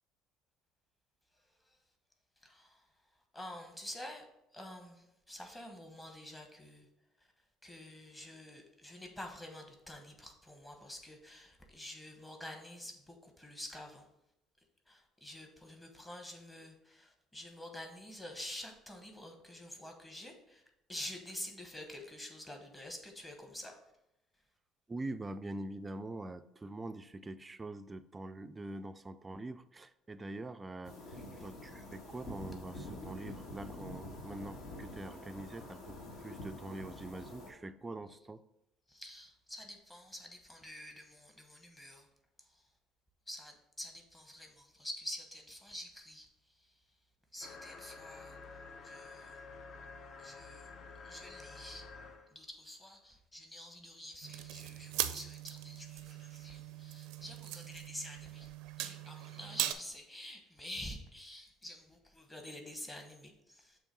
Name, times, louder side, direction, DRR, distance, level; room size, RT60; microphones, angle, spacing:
voice 1, 2.4-2.8 3.3-4.2 4.5-6.9 7.6-14.0 14.9-20.6 20.9-23.7 38.9-42.0 43.3-46.3 47.3-48.4 48.8-49.3 50.2-50.7 51.0-51.9 52.3-58.5 58.8-63.8, left 1 dB, 10° left, 3 dB, 1.0 m, -48 dB
voice 2, 24.9-38.4, right 2 dB, 15° right, 12 dB, 0.3 m, -44 dB
sound 1, 30.8-37.5, left 1 dB, 60° left, 1.5 m, -47 dB
sound 2, 47.4-52.3, left 4 dB, 45° left, 0.6 m, -50 dB
sound 3, 54.2-59.7, right 13 dB, 80° right, 0.4 m, -40 dB
7.0 x 3.0 x 5.3 m, 0.86 s
cardioid pair, 130°, 0 cm